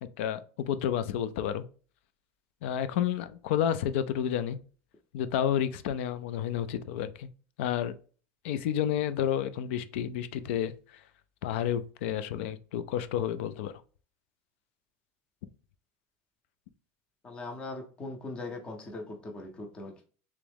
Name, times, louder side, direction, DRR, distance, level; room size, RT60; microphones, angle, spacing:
voice 1, 0.0-1.6 2.6-4.6 5.1-7.3 7.6-7.9 8.4-11.0 11.4-13.8, left 10 dB, 70° left, 0.4 m, -30 dB
voice 2, 17.2-20.1, left 2 dB, 15° left, 0.6 m, -40 dB
3.5 x 3.1 x 3.4 m
cardioid pair, 180°, 7 cm